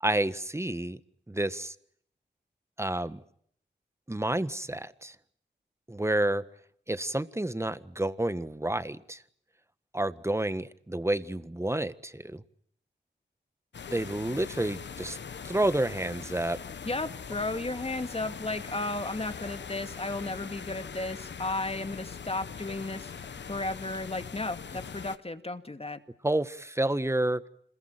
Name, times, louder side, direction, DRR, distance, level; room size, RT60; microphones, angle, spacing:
voice 1, 0.0-1.0 1.3-1.7 2.8-3.2 4.1-5.1 5.9-6.4 6.9-9.2 9.9-12.4 13.9-15.2 15.4-16.6 26.2-27.4, right 1 dB, 15° right, 14 dB, 1.6 m, -29 dB
sound 1, 13.7-25.2, left 6 dB, 80° left, 1.1 m, -42 dB
voice 2, 16.8-26.0, left 2 dB, 35° left, 9 dB, 2.4 m, -34 dB
27.0 x 21.5 x 9.1 m, 0.67 s
cardioid pair, 50°, 18 cm